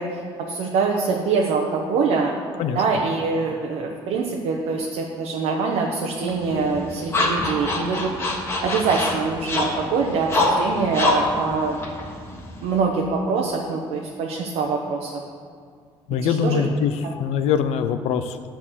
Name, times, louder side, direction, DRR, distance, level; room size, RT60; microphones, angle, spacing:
voice 1, 0.0-2.3 2.7-8.1 8.4-11.8 12.6-15.2 16.2-16.7, right 4 dB, 80° right, -1 dB, 1.0 m, -24 dB
sound 1, 6.3-12.8, left 2 dB, 25° left, 1.5 m, -25 dB
voice 2, 16.1-18.6, left 7 dB, 80° left, 10 dB, 0.5 m, -23 dB
11.0 x 4.2 x 7.4 m, 2.2 s
cardioid pair, 145°, 10 cm